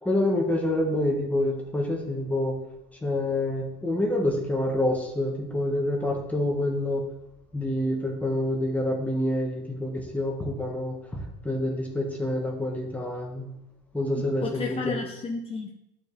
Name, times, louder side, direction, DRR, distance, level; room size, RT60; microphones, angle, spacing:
voice 1, 0.0-2.5 3.0-7.0 7.5-10.9 11.4-13.5 13.9-15.0, left 1 dB, 5° left, -1 dB, 1.4 m, -27 dB
voice 2, 14.1-15.7, left 5 dB, 30° left, 1 dB, 0.8 m, -32 dB
11.5 x 4.6 x 3.3 m, 0.84 s
supercardioid pair, 120°, 20 cm